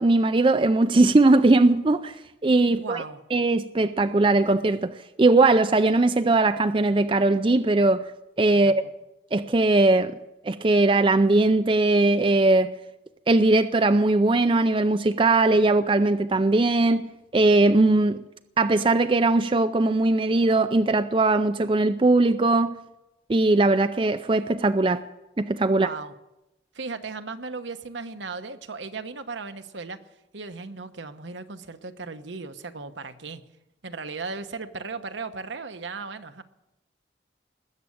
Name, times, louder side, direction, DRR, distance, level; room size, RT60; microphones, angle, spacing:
voice 1, 0.0-2.1 2.4-3.0 3.3-8.0 8.4-8.8 9.3-10.2 10.4-12.7 13.3-18.2 18.6-22.8 23.3-25.0 25.4-25.9, right 2 dB, 30° right, 0.4 m, -20 dB
voice 2, 2.6-3.2 8.6-8.8 25.7-26.1 26.7-30.0 30.3-33.4 33.8-36.4, right 4 dB, 80° right, 1.0 m, -36 dB
20.0 x 7.6 x 8.5 m
head